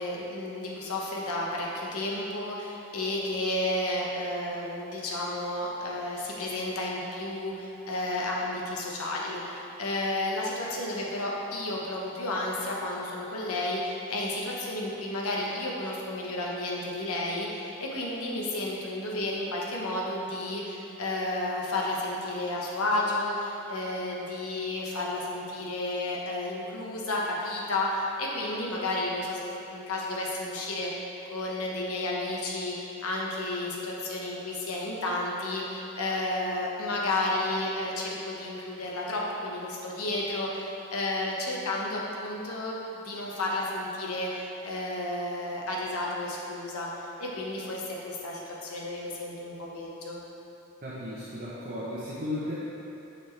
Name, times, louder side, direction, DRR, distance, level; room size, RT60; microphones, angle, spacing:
voice 1, 0.0-31.0 31.3-46.9 47.2-50.2, left 2 dB, 85° left, -3 dB, 1.1 m, -32 dB
voice 2, 50.8-52.5, left 1 dB, 40° right, -9 dB, 0.9 m, -35 dB
9.0 x 4.3 x 3.3 m, 2.9 s
head